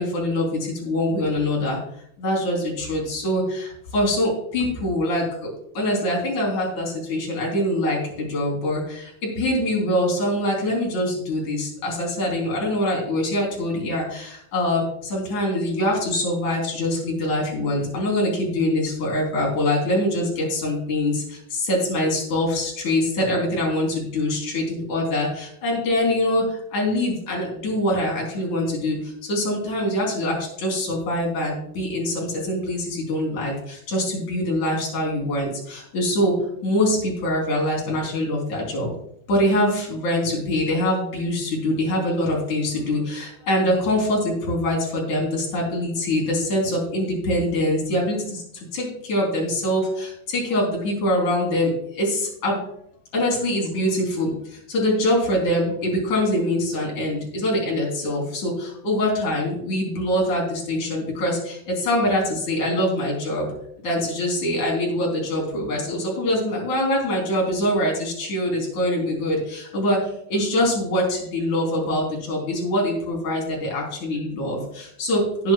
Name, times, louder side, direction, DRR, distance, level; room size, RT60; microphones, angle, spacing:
voice 1, 0.0-1.8 2.2-36.3 36.6-38.9 39.3-48.4 48.7-52.6 53.1-63.5 63.8-75.5, left 1 dB, 40° left, -1 dB, 4.5 m, -24 dB
18.0 x 9.3 x 2.4 m, 0.70 s
omnidirectional pair, 5.9 m